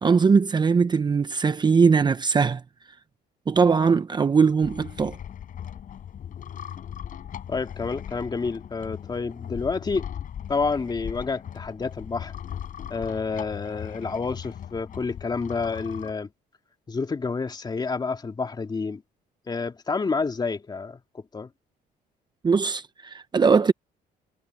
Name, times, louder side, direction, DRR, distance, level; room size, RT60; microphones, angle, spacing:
voice 1, 0.0-2.6 3.5-5.2 22.4-23.7, right 5 dB, 25° right, 0.8 m, -20 dB
sound 1, 4.6-16.1, left 9 dB, 50° left, 6.5 m, -38 dB
voice 2, 7.5-10.1 10.5-12.3 12.9-16.3 16.9-19.0 19.5-21.5, left 4 dB, 25° left, 3.0 m, -29 dB
cardioid pair, 110°, 17 cm